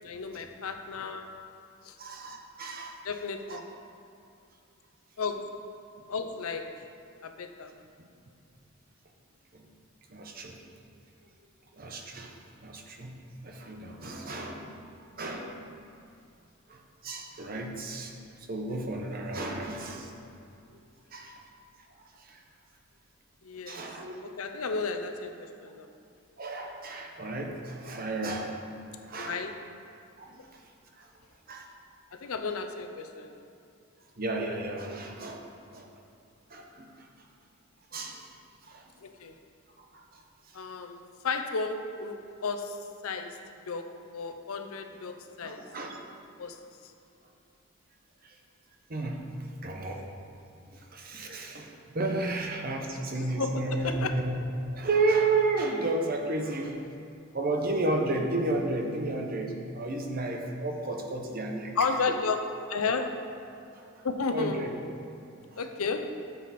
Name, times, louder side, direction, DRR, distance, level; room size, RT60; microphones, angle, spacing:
voice 1, 0.0-1.3 1.8-1.9 3.0-3.6 5.2-5.5 6.1-6.7 7.2-7.7 23.4-23.8 24.4-25.9 29.2-29.5 32.1-33.4 39.0-39.4 40.5-43.4 43.7-45.6 46.4-46.6 52.9-54.1 61.8-63.1 64.0-64.6 65.6-66.2, left 4 dB, 85° left, 7 dB, 0.7 m, -33 dB
voice 2, 2.0-3.0 3.5-3.6 9.5-9.7 10.1-10.6 11.7-15.6 16.7-18.1 18.5-20.1 21.1-21.4 22.0-22.4 23.7-24.1 26.4-28.5 29.0-29.4 30.2-30.6 31.0-31.1 31.5-31.7 34.2-35.9 36.5-37.1 37.9-38.3 38.6-38.9 39.9-40.6 45.4-46.0 48.2-48.4 48.9-49.3 49.6-50.0 50.7-54.4 54.7-56.8 57.3-61.8 63.7-64.1 64.3-64.7 65.5-65.6, right 2 dB, 40° right, 2 dB, 0.9 m, -33 dB
9.3 x 7.1 x 4.2 m, 2.6 s
head